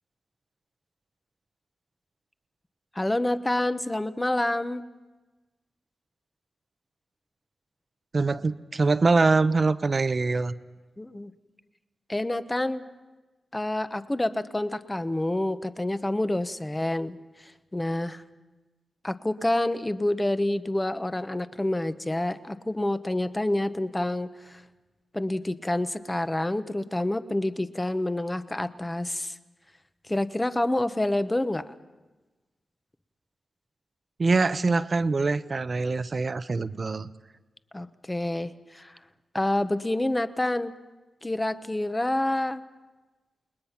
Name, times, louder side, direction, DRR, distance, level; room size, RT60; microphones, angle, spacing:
voice 1, 2.9-4.8 11.0-11.3 12.1-12.8 13.5-17.2 17.4-18.2 19.0-24.6 25.1-29.4 30.1-31.7 37.7-38.9 39.3-40.7 41.2-42.6, left 1 dB, 15° left, 11 dB, 0.9 m, -28 dB
voice 2, 8.1-10.5 34.2-37.1, right 3 dB, 45° right, 13 dB, 0.8 m, -24 dB
29.5 x 20.5 x 5.8 m, 1.2 s
wide cardioid pair, 80°, 0 cm